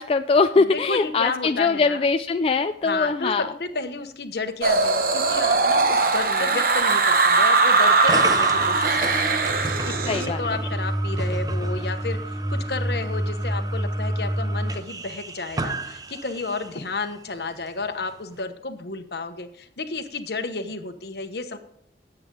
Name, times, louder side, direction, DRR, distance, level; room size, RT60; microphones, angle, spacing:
voice 1, 0.0-3.5 10.1-10.4, left 4 dB, 30° left, 8 dB, 0.3 m, -22 dB
voice 2, 0.6-2.1 2.8-9.5 9.8-12.2 12.5-21.6, left 3 dB, 65° left, 8 dB, 1.1 m, -31 dB
sound 1, 4.6-10.3, right 3 dB, 55° right, 1.0 m, -20 dB
sound 2, 8.1-16.8, right 1 dB, 20° right, 0.6 m, -28 dB
17.5 x 7.9 x 3.8 m, 0.68 s
head